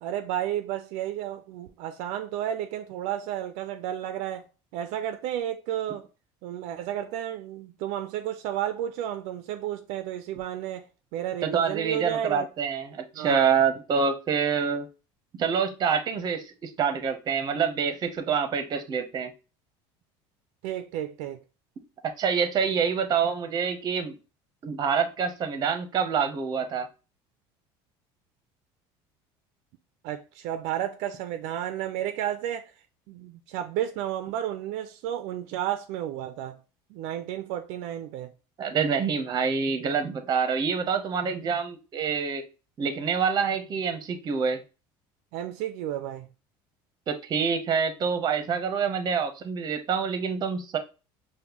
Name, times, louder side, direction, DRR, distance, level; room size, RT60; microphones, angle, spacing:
voice 1, 0.0-4.5 4.7-6.1 6.4-10.9 11.1-12.5 13.1-13.4 20.6-21.4 30.0-32.7 33.1-36.6 36.9-38.3 45.3-46.3, right 11 dB, 70° right, 0.4 m, -32 dB
voice 2, 11.4-14.9 15.4-19.3 22.2-24.2 24.6-26.9 38.6-42.4 42.8-44.6 47.1-50.8, right 6 dB, 35° right, 0.7 m, -26 dB
5.2 x 2.2 x 2.9 m
cardioid pair, 125°, 12 cm